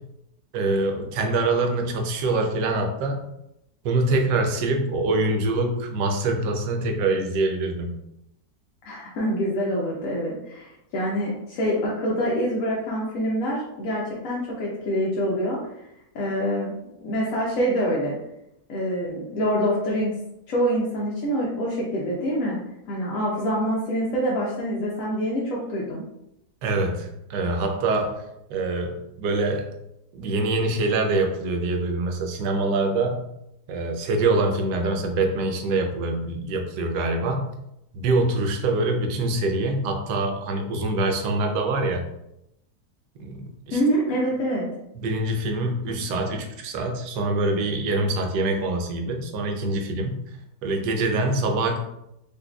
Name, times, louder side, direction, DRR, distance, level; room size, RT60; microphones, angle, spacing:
voice 1, 0.5-3.2 3.8-7.9 26.6-29.7 30.1-33.2 33.7-37.5 37.9-42.0 43.2-43.8 44.9-50.2 50.6-51.8, right 2 dB, 85° right, 3 dB, 1.2 m, -25 dB
voice 2, 8.8-15.6 16.1-16.7 17.0-18.1 18.7-20.2 20.5-22.6 22.9-26.0 43.7-44.7, equal, 60° left, -4 dB, 0.9 m, -25 dB
4.0 x 3.0 x 2.3 m, 0.83 s
omnidirectional pair, 1.8 m